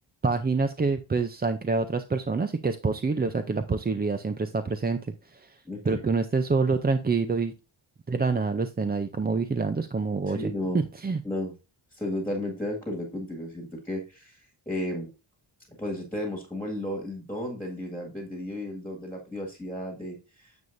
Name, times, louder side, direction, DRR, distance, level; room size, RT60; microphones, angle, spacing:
voice 1, 0.2-7.5 8.1-11.2, right 4 dB, 20° right, 9 dB, 0.4 m, -27 dB
voice 2, 5.7-6.0 10.3-10.8 11.2-11.5 11.9-15.1 15.8-20.5, left 1 dB, 5° left, 0 dB, 1.8 m, -33 dB
9.5 x 7.1 x 2.6 m, 0.31 s
wide cardioid pair, 140°, 48 cm